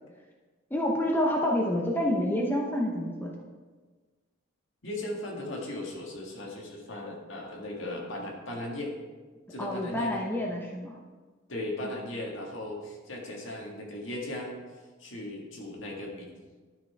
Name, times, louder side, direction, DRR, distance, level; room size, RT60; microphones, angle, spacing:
voice 1, 0.7-3.3 9.6-10.9 11.8-12.0, left 1 dB, 10° left, -1 dB, 0.9 m, -28 dB
voice 2, 4.8-8.9 9.5-10.2 11.5-14.6 15.0-16.3, left 1 dB, 65° left, -1 dB, 1.8 m, -37 dB
12.0 x 5.9 x 3.4 m, 1.4 s
head